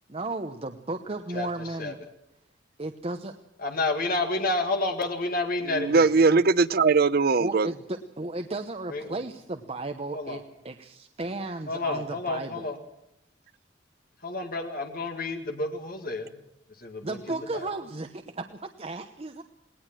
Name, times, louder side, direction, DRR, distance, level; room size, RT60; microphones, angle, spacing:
voice 1, 0.1-2.0 2.8-3.3 6.3-6.4 7.4-12.7 17.0-19.4, right 2 dB, 30° right, 6 dB, 0.9 m, -34 dB
voice 2, 3.6-6.1 8.9-9.2 10.1-10.4 11.7-12.8 14.2-16.3 16.8-17.1 17.5-17.7, left 2 dB, 50° left, 5 dB, 2.1 m, -30 dB
voice 3, 5.7-7.7, right 4 dB, 55° right, 15 dB, 0.7 m, -20 dB
19.5 x 19.0 x 7.5 m, 0.82 s
head